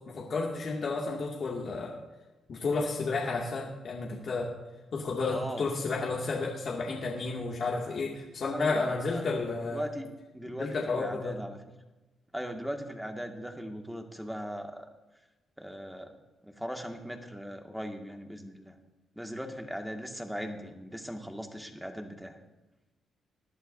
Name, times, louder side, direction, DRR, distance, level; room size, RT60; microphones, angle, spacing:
voice 1, 0.1-1.9 2.5-4.5 4.9-9.9 10.6-11.4, left 3 dB, 55° left, -3 dB, 2.3 m, -32 dB
voice 2, 5.3-5.7 8.5-9.2 9.7-10.1 10.3-11.6 12.3-14.9 15.6-16.1 16.4-18.8 19.2-22.4, equal, ahead, 3 dB, 2.0 m, -39 dB
20.0 x 11.5 x 2.7 m, 1.1 s
supercardioid pair, 65°, 0 cm